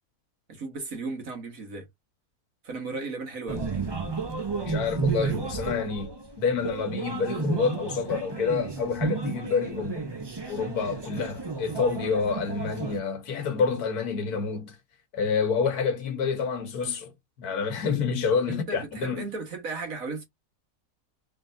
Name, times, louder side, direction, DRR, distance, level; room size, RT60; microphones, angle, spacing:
voice 1, 0.5-1.9 2.6-3.7 5.2-5.4 18.5-20.2, right 3 dB, 60° right, 1.8 m, -35 dB
sound 1, 3.5-13.0, right 4 dB, 40° right, 0.3 m, -32 dB
voice 2, 4.6-10.1 10.5-14.8 15.1-17.1 17.4-19.2, left 5 dB, 75° left, 1.5 m, -28 dB
3.7 x 3.5 x 2.6 m
omnidirectional pair, 1.7 m